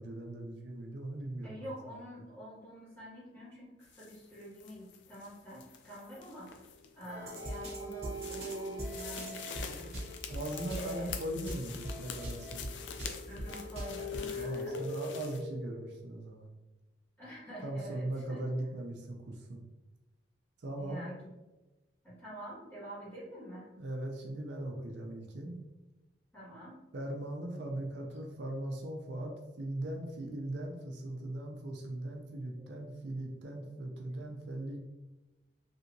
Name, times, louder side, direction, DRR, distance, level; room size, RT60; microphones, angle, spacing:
voice 1, 0.0-1.7 10.3-12.7 14.4-16.5 17.6-19.6 20.6-21.1 23.8-25.6 26.9-34.8, right 1 dB, 65° right, 1 dB, 0.5 m, -39 dB
voice 2, 1.4-6.6 6.9-10.0 10.8-11.1 13.3-14.8 17.2-18.5 20.8-21.2 22.0-23.7 26.3-26.8 32.6-32.8, equal, 10° left, -9 dB, 1.5 m, -47 dB
sound 1, 3.8-15.4, left 7 dB, 75° left, 0.4 m, -47 dB
sound 2, 7.1-14.2, equal, 35° right, 1.1 m, -42 dB
sound 3, 7.2-10.3 10.7-16.0, left 1 dB, 60° left, 0.9 m, -44 dB
3.3 x 2.8 x 2.6 m, 1.1 s
head